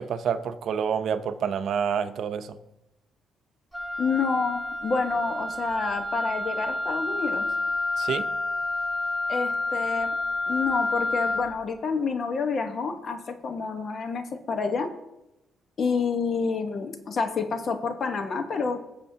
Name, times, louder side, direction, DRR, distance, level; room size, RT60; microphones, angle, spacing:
voice 1, 0.0-2.6 8.0-8.2, right 7 dB, 65° right, 10 dB, 0.7 m, -28 dB
Wind instrument woodwind instrument, 3.7-11.5, left 2 dB, ahead, 2.7 m, -29 dB
voice 2, 4.0-7.5 9.3-10.1 10.5-14.9 15.8-18.8, left 4 dB, 50° left, 7 dB, 1.1 m, -28 dB
18.5 x 7.0 x 2.8 m, 0.91 s
cardioid pair, 90°, 0 cm